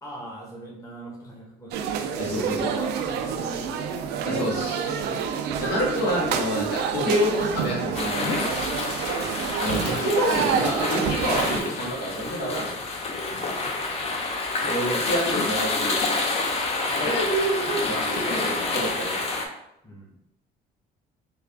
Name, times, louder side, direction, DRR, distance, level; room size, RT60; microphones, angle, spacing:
voice 1, 0.0-5.3 9.2-9.5 19.8-20.1, right 1 dB, 20° left, -4 dB, 1.0 m, -41 dB
sound 1, 1.7-11.6, right 7 dB, 80° right, 0.4 m, -28 dB
voice 2, 2.2-2.7 4.3-4.8 5.6-8.9 9.6-12.8 14.6-16.0 16.9-19.2, equal, 75° left, -4 dB, 1.4 m, -27 dB
sound 2, 7.9-19.4, left 3 dB, 35° left, 0.6 m, -28 dB
3.4 x 2.4 x 3.4 m, 0.81 s
cardioid pair, 110°, 17 cm